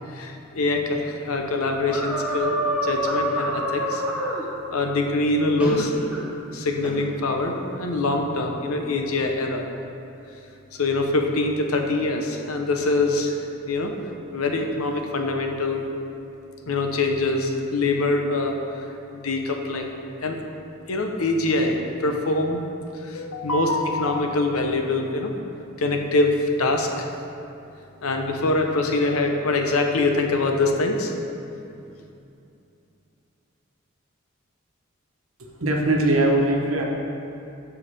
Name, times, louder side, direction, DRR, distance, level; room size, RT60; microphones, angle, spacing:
voice 1, 0.1-4.0 4.7-5.9 6.5-9.6 10.7-13.4 13.7-13.9 14.3-15.9 16.7-18.8 19.1-20.4 20.9-22.7 23.0-25.3 25.8-27.1 28.0-31.1, left 2 dB, 85° left, 3 dB, 0.8 m, -24 dB
sound 1, 1.9-4.4 5.6-6.2 6.8-7.0, equal, 5° right, 0.9 m, -26 dB
voice 2, 35.4-36.9, right 1 dB, 75° right, 0 dB, 1.1 m, -21 dB
12.5 x 4.7 x 3.4 m, 2.7 s
head